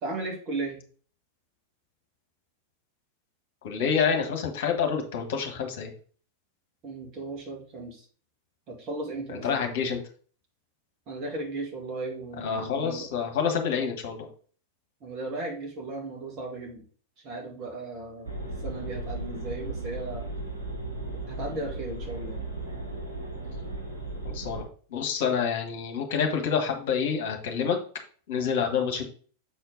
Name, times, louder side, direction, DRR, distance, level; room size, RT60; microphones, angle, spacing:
voice 1, 0.0-0.8 6.8-8.0 8.7-9.6 11.1-13.1 15.0-16.8 17.2-18.3 18.6-20.3 21.3-22.4, right 2 dB, 35° right, 1 dB, 2.2 m, -36 dB
voice 2, 3.6-5.9 9.4-10.0 12.4-14.3 24.2-24.6 24.9-27.8 28.3-29.0, left 6 dB, 55° left, 4 dB, 1.4 m, -27 dB
sound 1, 18.2-24.6, right 2 dB, 80° right, 1.7 m, -36 dB
7.3 x 4.4 x 3.9 m, 0.43 s
figure-of-eight pair, 90°, 0 cm